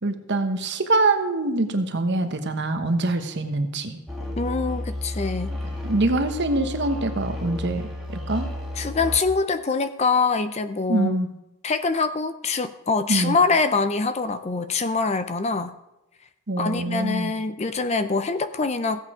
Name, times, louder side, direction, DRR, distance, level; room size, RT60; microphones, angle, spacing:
voice 1, 0.0-4.0 5.5-5.6 5.8-8.5 10.9-11.3 13.1-13.4 16.5-17.3, right 2 dB, 50° right, 7 dB, 1.1 m, -24 dB
sound 1, 4.1-9.2, left 1 dB, ahead, 2.4 m, -32 dB
voice 2, 4.4-5.5 8.8-11.2 11.6-15.8 16.6-19.0, left 4 dB, 30° left, 11 dB, 0.5 m, -24 dB
15.5 x 8.3 x 4.9 m, 0.95 s
head